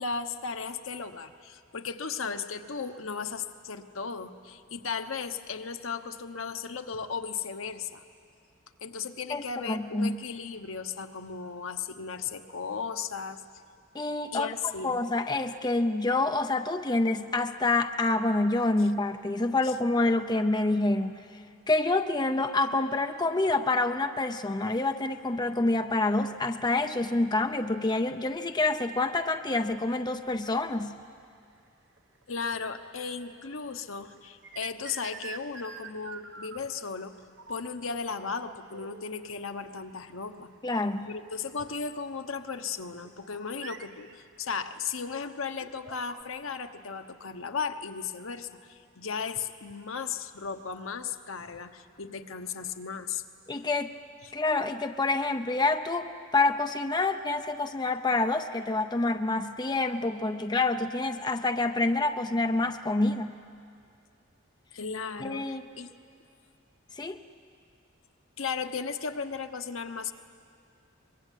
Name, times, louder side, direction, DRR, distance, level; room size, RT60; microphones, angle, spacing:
voice 1, 0.0-8.0 8.8-13.4 14.3-15.0 19.6-19.7 32.3-37.2 37.5-40.5 41.0-53.2 54.2-54.3 64.7-65.9 68.4-70.1, left 5 dB, 70° left, 8 dB, 1.1 m, -36 dB
voice 2, 9.3-10.2 13.9-14.5 14.8-21.2 21.7-30.9 40.6-41.1 53.5-53.9 54.3-63.3 65.2-65.7 67.0-67.2, left 2 dB, 20° left, 7 dB, 0.6 m, -27 dB
sound 1, 31.1-31.3 32.0-33.5 33.8-36.9 37.4-37.7 38.0-39.2 40.1-40.2 40.6-40.7 41.3-41.4 43.0-46.2, right 6 dB, 60° right, 1.2 m, -46 dB
24.0 x 21.5 x 9.2 m, 2.4 s
head